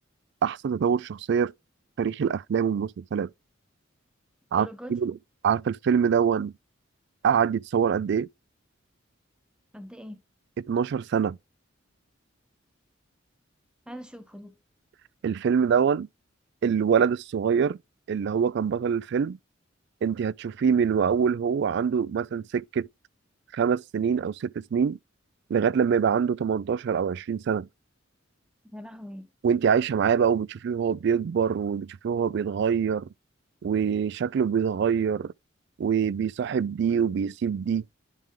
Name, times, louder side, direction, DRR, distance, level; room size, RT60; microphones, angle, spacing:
voice 1, 0.4-1.5 2.0-3.3 4.5-5.1 5.4-6.5 7.2-8.3 10.7-11.4 15.2-16.1 16.6-17.8 18.1-19.4 20.0-22.9 23.5-25.0 25.5-27.7 29.4-33.1 33.6-35.3 35.8-37.8, right 7 dB, 60° right, 0.3 m, -25 dB
voice 2, 4.6-5.0 9.7-10.2 13.9-14.5 28.6-29.3, equal, 5° right, 0.9 m, -41 dB
10.5 x 3.5 x 3.6 m
head